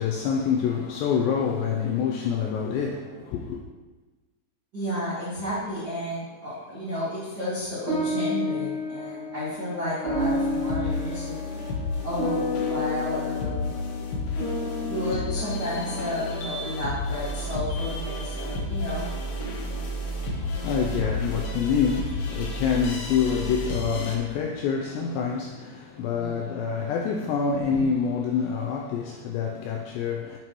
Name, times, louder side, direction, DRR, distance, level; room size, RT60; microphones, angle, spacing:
voice 1, 0.0-3.6 20.3-30.4, left 6 dB, 90° left, 2.5 m, -26 dB
voice 2, 4.7-11.4 12.0-13.7 14.9-19.1 26.0-26.5 27.7-27.8, equal, 80° right, 0.9 m, -32 dB
sound 1, 7.9-16.5, left 2 dB, 35° left, 2.0 m, -31 dB
sound 2, 10.1-24.2, left 1 dB, 70° left, 3.1 m, -32 dB
8.8 x 7.5 x 3.1 m
omnidirectional pair, 5.6 m